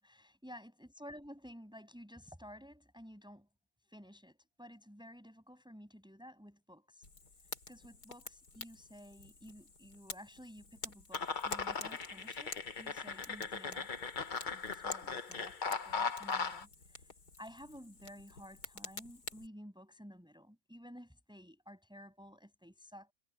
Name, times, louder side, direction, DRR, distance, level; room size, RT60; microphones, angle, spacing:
voice 1, 0.0-3.5 3.8-7.1 7.4-14.1 14.5-17.1 17.4-23.1, equal, ahead, 7.4 m, -53 dB
Fire, 7.0-19.5, left 4 dB, 55° left, 3.7 m, -50 dB
sound 1, 11.1-16.6, left 5 dB, 35° left, 0.9 m, -38 dB
omnidirectional pair, 2.0 m